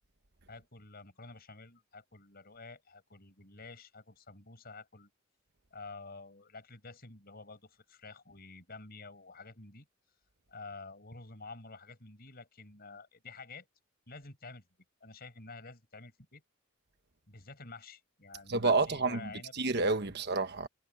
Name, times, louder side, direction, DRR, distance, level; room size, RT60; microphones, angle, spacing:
voice 1, 0.5-5.1 5.7-9.9 10.5-13.7 14.1-14.6 15.0-16.4 17.3-19.5 20.0-20.1, left 3 dB, 45° left, 5.8 m, -49 dB
voice 2, 18.5-20.7, right 3 dB, 50° right, 1.3 m, -29 dB
head